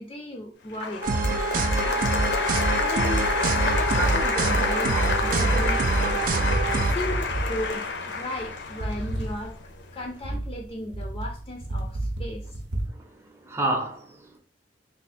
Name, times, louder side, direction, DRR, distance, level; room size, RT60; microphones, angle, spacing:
voice 1, 0.0-2.2 2.8-3.3 3.5-6.3 6.9-7.9 8.1-9.5 9.9-12.4, left 1 dB, 30° left, 0.4 m, -35 dB
Applause, 0.7-9.8, left 4 dB, 80° left, 0.6 m, -28 dB
sound 1, 1.0-6.9, right 3 dB, 50° right, 0.3 m, -25 dB
sound 2, 3.3-12.9, right 1 dB, 85° right, 0.8 m, -31 dB
voice 2, 12.9-14.4, right 2 dB, 15° right, 0.6 m, -31 dB
3.3 x 2.0 x 4.2 m
head